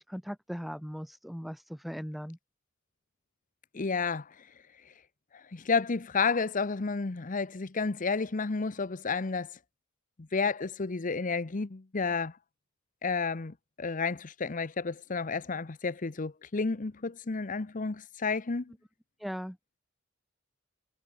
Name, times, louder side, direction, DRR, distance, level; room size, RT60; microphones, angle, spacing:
voice 1, 0.0-2.4 19.2-19.6, equal, ahead, 0.5 m, -39 dB
voice 2, 3.7-4.3 5.5-9.5 10.2-12.4 13.0-18.7, left 4 dB, 40° left, 0.8 m, -31 dB
head